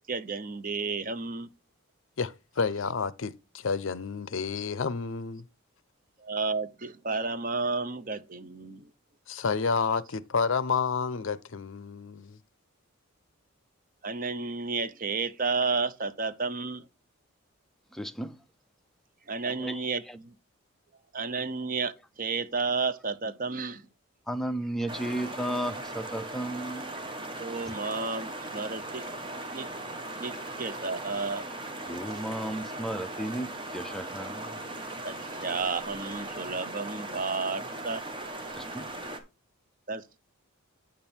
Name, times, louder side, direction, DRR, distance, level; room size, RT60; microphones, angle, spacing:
voice 1, 0.1-1.5 6.2-8.9 14.0-16.9 19.3-20.3 21.1-23.9 27.4-29.1 29.3-29.7 30.2-31.5 35.0-38.0 39.9-40.0, right 4 dB, 40° right, 0.7 m, -32 dB
voice 2, 2.2-5.5 9.3-12.4, left 5 dB, 60° left, 0.6 m, -30 dB
voice 3, 17.9-18.4 19.5-20.2 24.3-26.9 31.9-34.5 38.5-38.9, right 1 dB, ahead, 0.5 m, -34 dB
sound 1, 24.9-39.2, right 2 dB, 20° right, 1.2 m, -38 dB
8.8 x 5.3 x 4.3 m
head